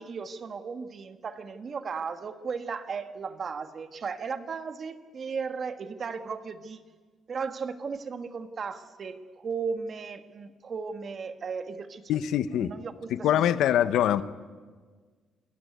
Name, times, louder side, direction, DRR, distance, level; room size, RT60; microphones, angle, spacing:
voice 1, 0.0-6.8 7.3-13.4 13.8-14.2, right 5 dB, 50° right, 9 dB, 1.6 m, -36 dB
voice 2, 12.1-12.7 13.1-14.2, left 10 dB, 80° left, 14 dB, 0.9 m, -24 dB
28.0 x 15.0 x 9.4 m, 1.5 s
cardioid pair, 90°, 0 cm